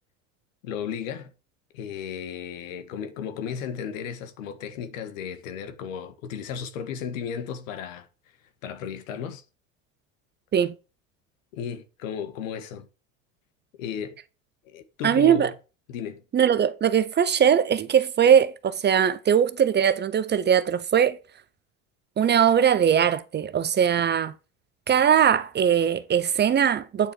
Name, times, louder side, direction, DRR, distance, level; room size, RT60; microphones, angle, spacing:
voice 1, 0.6-1.3 1.7-8.1 8.6-9.4 11.5-12.9 13.8-14.2 14.6-15.5 15.9-16.2 24.0-24.1, left 8 dB, 75° left, 1.7 m, -34 dB
voice 2, 15.0-15.5 16.3-21.2 22.2-24.3 24.9-27.1, right 8 dB, 25° right, 0.7 m, -20 dB
9.3 x 4.3 x 4.8 m
hypercardioid pair, 95°, 40 cm